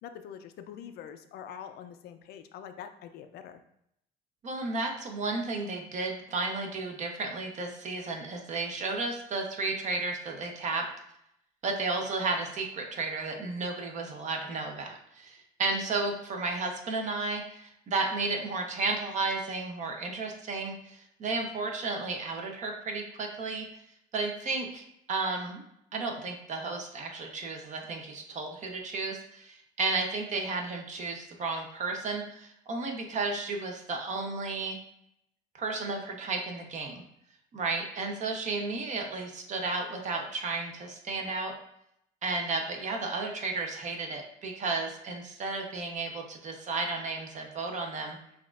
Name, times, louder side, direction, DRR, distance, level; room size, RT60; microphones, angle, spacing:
voice 1, 0.0-3.6, left 8 dB, 70° left, 8 dB, 0.4 m, -44 dB
voice 2, 4.4-10.9 11.6-23.7 24.1-25.6 25.9-34.8 35.5-37.0 37.5-41.5 42.2-48.2, right 3 dB, 45° right, 3 dB, 0.6 m, -33 dB
5.8 x 2.3 x 2.4 m, 0.75 s
cardioid pair, 110°, 17 cm